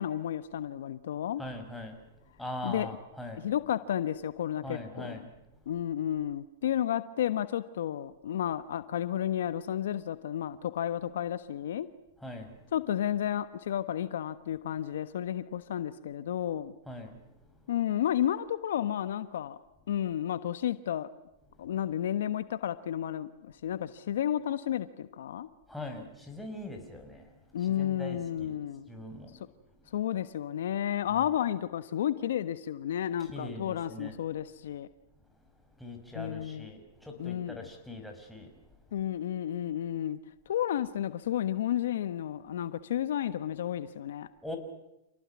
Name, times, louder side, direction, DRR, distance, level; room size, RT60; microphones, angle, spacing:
voice 1, 0.0-1.4 2.6-2.9 3.4-5.2 5.7-11.9 12.7-16.7 17.7-19.6 19.9-21.1 21.6-25.5 27.5-28.9 29.9-34.9 36.1-36.7 37.2-37.7 38.9-40.2 40.5-44.3, left 10 dB, 75° left, 13 dB, 1.3 m, -32 dB
voice 2, 1.4-2.0 2.4-3.4 4.6-5.3 12.2-12.5 16.9-17.2 25.7-27.3 27.8-28.6 28.9-29.4 31.1-31.2 33.3-34.2 35.8-38.5 44.4-44.6, left 1 dB, 5° left, 3 dB, 5.7 m, -41 dB
28.0 x 18.5 x 9.7 m, 0.88 s
hypercardioid pair, 125°, 0 cm